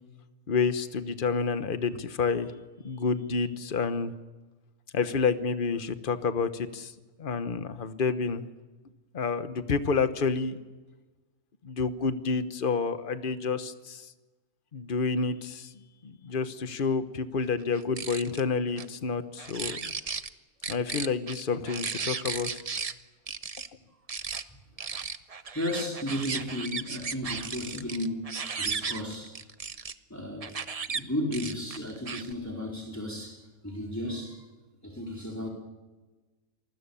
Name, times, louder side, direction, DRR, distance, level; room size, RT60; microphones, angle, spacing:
voice 1, 0.5-2.5 2.8-4.1 4.9-6.9 7.2-8.5 9.1-10.6 11.6-14.1 14.7-15.7 16.0-19.9 20.7-22.6, left 5 dB, 40° left, 11 dB, 1.2 m, -29 dB
sound 1, 17.7-18.4 18.8-18.9 19.4-20.3 20.6-22.9 23.3-23.7 24.1-24.4 24.8-29.9 30.4-31.0 31.3-32.3, right 5 dB, 35° right, 0.7 m, -35 dB
voice 2, 25.5-29.4 30.1-30.6 30.9-34.4 34.8-35.5, left 1 dB, 10° left, 0 dB, 4.0 m, -34 dB
27.5 x 20.0 x 7.1 m, 1.2 s
omnidirectional pair, 1.5 m